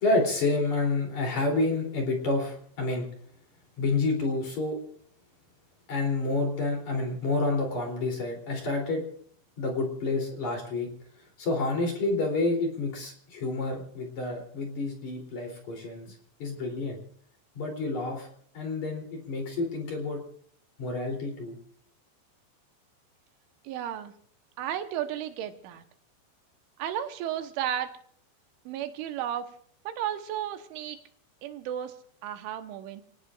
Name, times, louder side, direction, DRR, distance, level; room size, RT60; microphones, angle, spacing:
voice 1, 0.0-3.1 3.8-4.8 5.9-9.0 9.6-10.9 11.4-17.0 17.5-18.3 18.5-20.2 20.8-21.6, left 3 dB, 40° left, 1 dB, 4.3 m, -29 dB
voice 2, 23.7-24.1 24.6-25.8 26.8-28.0 28.7-29.5 29.9-31.0 31.4-32.0 32.2-33.0, right 10 dB, 85° right, 7 dB, 3.5 m, -33 dB
29.0 x 18.0 x 2.5 m, 0.62 s
omnidirectional pair, 5.4 m